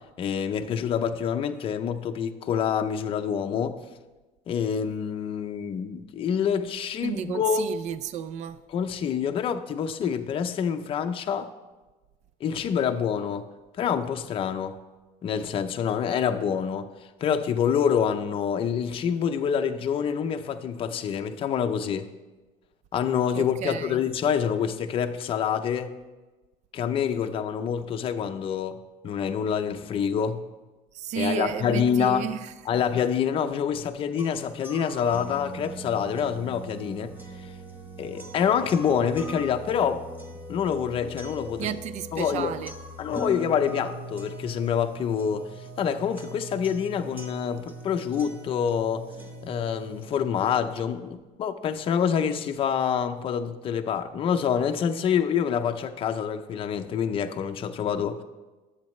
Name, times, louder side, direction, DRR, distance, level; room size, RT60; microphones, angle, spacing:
voice 1, 0.2-3.8 4.5-7.7 8.7-11.5 12.4-13.5 13.8-14.7 15.2-16.9 17.2-22.1 22.9-26.0 26.7-28.8 29.0-30.4 31.2-32.3 32.7-37.1 38.0-40.0 40.5-41.8 42.1-42.5 43.0-45.5 45.8-49.1 49.4-58.2, left 7 dB, 35° left, 0.6 m, -26 dB
voice 2, 7.0-8.6 10.0-10.2 23.3-24.0 30.9-32.8 41.6-42.7, right 9 dB, 50° right, 0.4 m, -32 dB
sound 1, 34.2-50.2, right 1 dB, 10° right, 0.9 m, -41 dB
23.0 x 8.1 x 3.2 m
cardioid pair, 180°, 16 cm